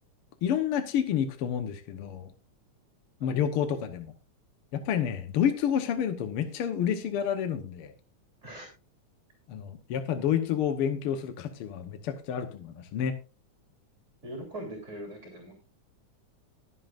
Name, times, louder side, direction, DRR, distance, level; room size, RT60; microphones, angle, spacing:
voice 1, 0.4-2.3 3.2-4.1 4.7-7.9 9.5-13.2, left 9 dB, 65° left, 8 dB, 1.5 m, -29 dB
voice 2, 14.2-15.5, right 1 dB, 25° right, 1 dB, 3.4 m, -41 dB
21.0 x 7.7 x 2.5 m, 0.31 s
omnidirectional pair, 3.5 m